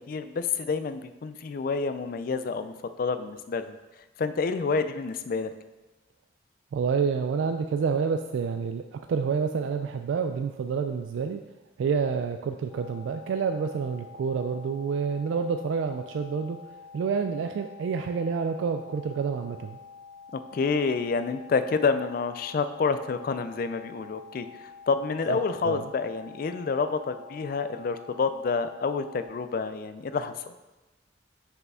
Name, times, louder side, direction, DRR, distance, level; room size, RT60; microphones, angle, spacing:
voice 1, 0.1-3.8 4.2-5.5 20.3-24.5 24.9-30.5, left 4 dB, 50° left, 11 dB, 0.3 m, -28 dB
voice 2, 6.7-11.4 11.8-16.6 16.9-19.8 25.3-25.4 25.6-25.8, right 5 dB, 85° right, 6 dB, 0.3 m, -28 dB
sound 1, 12.7-29.3, left 5 dB, 25° right, 1.6 m, -48 dB
6.4 x 4.8 x 3.6 m, 1.1 s
head